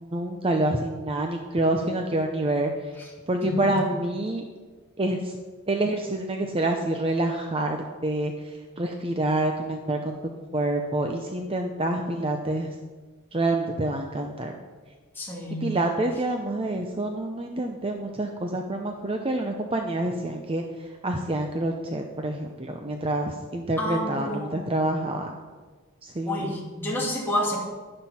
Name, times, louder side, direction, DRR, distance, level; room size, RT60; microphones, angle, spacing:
voice 1, 0.0-2.7 3.3-4.4 5.0-5.3 5.7-8.3 8.8-10.2 10.5-12.7 13.3-14.5 15.6-20.6 21.0-25.3 26.0-26.5, right 2 dB, 25° right, 4 dB, 0.7 m, -27 dB
voice 2, 3.4-3.8 15.1-15.7 23.8-24.6 26.2-27.6, left 1 dB, 10° left, -4 dB, 2.6 m, -29 dB
11.5 x 11.0 x 4.3 m, 1.4 s
head